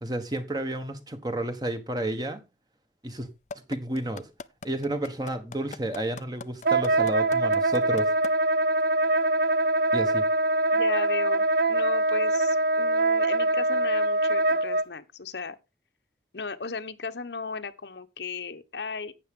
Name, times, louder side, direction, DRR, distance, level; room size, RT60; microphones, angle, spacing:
voice 1, 0.0-2.4 3.0-3.3 3.5-4.3 4.6-8.1 9.9-10.3, right 1 dB, 20° right, 1.3 m, -31 dB
sound 1, 3.5-8.3 8.8-8.9, left 4 dB, 40° left, 0.5 m, -40 dB
Wind instrument woodwind instrument, 6.6-14.8, right 2 dB, 55° right, 0.4 m, -23 dB
voice 2, 10.7-15.6 16.3-19.1, left 4 dB, 80° left, 1.0 m, -36 dB
12.0 x 8.5 x 3.7 m
head